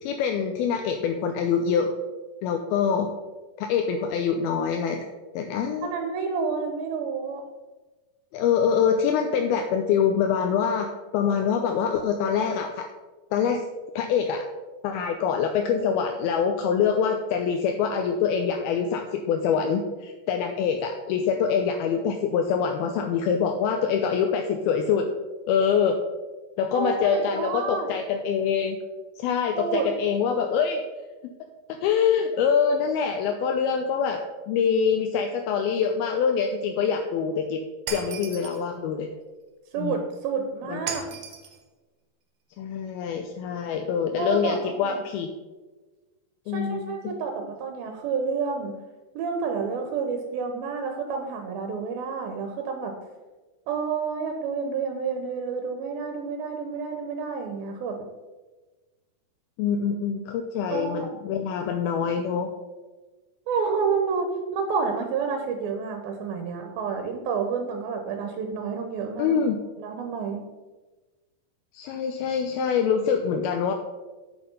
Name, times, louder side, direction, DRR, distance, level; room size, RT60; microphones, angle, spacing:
voice 1, 0.0-1.9 2.4-3.1 3.6-5.0 5.3-5.9 8.3-12.9 13.3-13.6 14.0-14.4 14.8-25.1 25.5-26.0 26.6-28.8 29.2-30.8 31.2-31.3 31.7-37.6 37.9-39.1 39.8-40.0 40.7-40.8 42.6-45.3 46.5-47.2 59.6-62.5 69.2-69.6 71.7-73.7, left 7 dB, 80° left, 4 dB, 2.4 m, -25 dB
voice 2, 5.8-7.4 26.7-27.9 29.5-29.9 39.7-41.0 44.2-45.0 46.5-48.8 49.1-53.0 53.7-58.1 60.7-61.1 63.5-69.4 69.8-70.5, right 5 dB, 75° right, 4 dB, 2.5 m, -29 dB
Shatter, 37.9-38.6 40.9-41.6, right 5 dB, 55° right, 2.0 m, -35 dB
8.5 x 7.0 x 5.3 m, 1.2 s
omnidirectional pair, 4.6 m